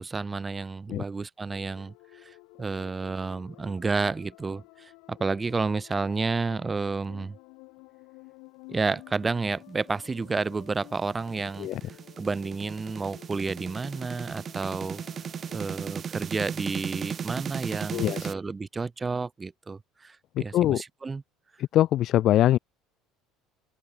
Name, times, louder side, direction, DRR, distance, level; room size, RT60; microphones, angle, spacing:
voice 1, 0.0-1.9 2.2-7.4 8.7-11.7 12.2-15.0 15.5-21.2, right 4 dB, 20° right, 0.4 m, -31 dB
sound 1, 1.5-16.0, left 30 dB, 75° left, 2.6 m, -53 dB
sound 2, 10.2-18.3, right 7 dB, 35° right, 1.0 m, -36 dB
voice 2, 17.9-18.3 20.4-20.8 21.6-22.6, left 13 dB, 55° left, 0.3 m, -23 dB
open air
supercardioid pair, 105°, 0 cm